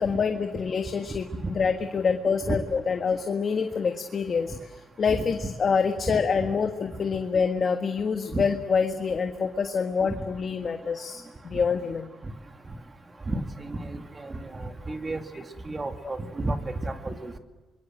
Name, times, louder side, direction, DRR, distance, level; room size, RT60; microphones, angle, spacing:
voice 1, 0.0-4.7 5.0-12.1, left 5 dB, 45° left, 6 dB, 1.5 m, -26 dB
voice 2, 6.1-6.5 8.3-8.4 11.5-11.6 13.3-17.4, right 2 dB, 25° right, 6 dB, 2.3 m, -32 dB
25.5 x 21.5 x 7.8 m, 1.3 s
cardioid pair, 90°, 0 cm